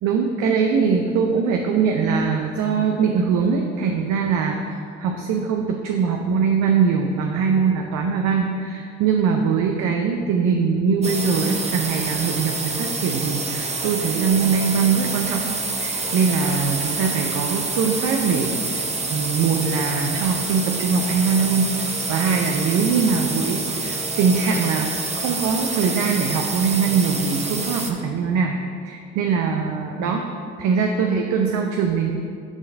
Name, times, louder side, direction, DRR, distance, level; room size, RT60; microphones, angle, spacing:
voice 1, 0.0-15.4 15.8-28.6 28.8-30.2 30.6-32.1, right 5 dB, 55° right, 3 dB, 0.7 m, -22 dB
sound 1, 11.0-27.9, right 3 dB, 20° right, 0.8 m, -27 dB
8.0 x 3.8 x 5.2 m, 2.3 s
hypercardioid pair, 55°, 34 cm